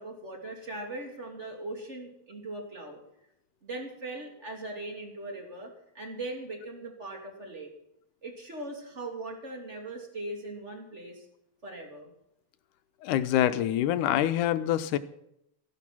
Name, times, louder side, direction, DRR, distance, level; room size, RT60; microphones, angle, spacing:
voice 1, 0.0-3.0 3.6-7.7 8.2-11.3 11.6-12.1, right 2 dB, 20° right, 2 dB, 3.0 m, -40 dB
voice 2, 13.0-15.0, left 12 dB, 85° left, 12 dB, 2.3 m, -25 dB
16.0 x 11.5 x 6.2 m, 0.80 s
omnidirectional pair, 3.5 m